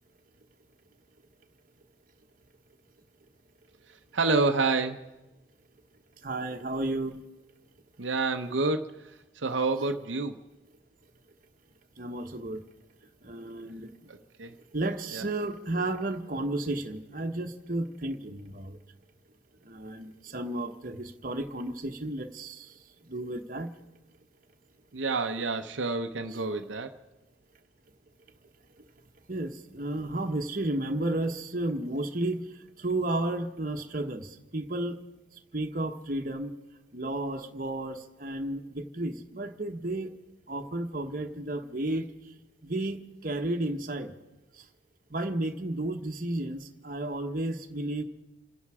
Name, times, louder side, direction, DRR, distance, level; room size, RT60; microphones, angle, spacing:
voice 1, 4.1-5.1 8.0-10.4 14.1-14.5 15.1-15.2 24.9-26.9, right 3 dB, 85° right, 5 dB, 0.8 m, -28 dB
voice 2, 6.2-7.2 12.0-12.6 13.2-14.1 14.7-18.8 19.6-22.8 23.1-23.7 29.3-32.4 32.8-35.0 35.5-36.5 36.9-40.1 40.5-42.3 42.6-44.1 44.6-44.7 45.1-48.0, right 1 dB, 45° right, 4 dB, 1.2 m, -32 dB
28.5 x 10.5 x 4.9 m, 1.0 s
head